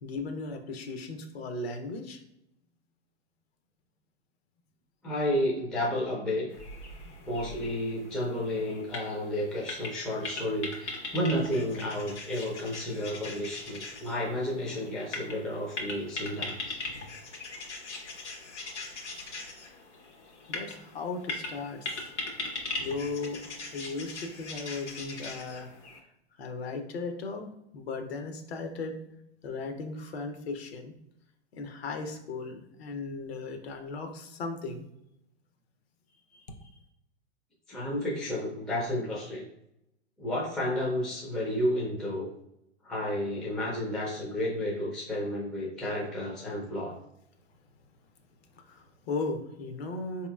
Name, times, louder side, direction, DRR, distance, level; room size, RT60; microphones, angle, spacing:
voice 1, 0.0-2.2 7.0-7.1 20.5-22.1 22.8-25.7 26.4-29.0 29.4-30.9 31.5-34.9 36.3-36.7 48.5-50.3, left 3 dB, 60° left, 5 dB, 0.8 m, -37 dB
voice 2, 5.0-6.5 7.3-16.8 37.7-39.4 40.2-42.3 42.8-47.0, left 1 dB, ahead, -5 dB, 0.4 m, -31 dB
sound 1, 6.5-26.0, left 3 dB, 75° left, 1.1 m, -40 dB
4.2 x 2.9 x 2.3 m, 0.81 s
hypercardioid pair, 120°, 35 cm